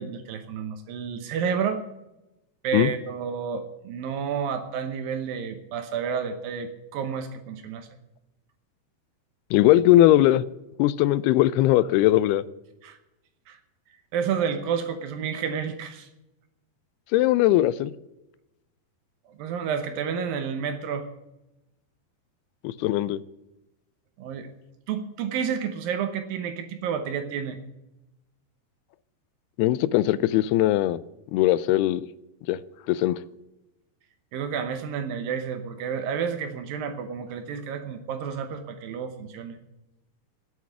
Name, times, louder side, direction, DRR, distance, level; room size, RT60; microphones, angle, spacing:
voice 1, 0.0-1.8 2.6-7.9 12.8-13.0 13.5-13.6 14.1-16.1 19.4-21.1 24.2-24.5 24.9-27.6 34.3-39.6, right 7 dB, 70° right, 2.5 m, -30 dB
voice 2, 9.5-10.4 10.8-12.4 17.1-17.9 22.6-23.2 29.6-31.0 31.3-32.1 32.5-32.6 32.9-33.2, left 14 dB, 85° left, 2.5 m, -20 dB
10.0 x 8.5 x 9.9 m
omnidirectional pair, 4.7 m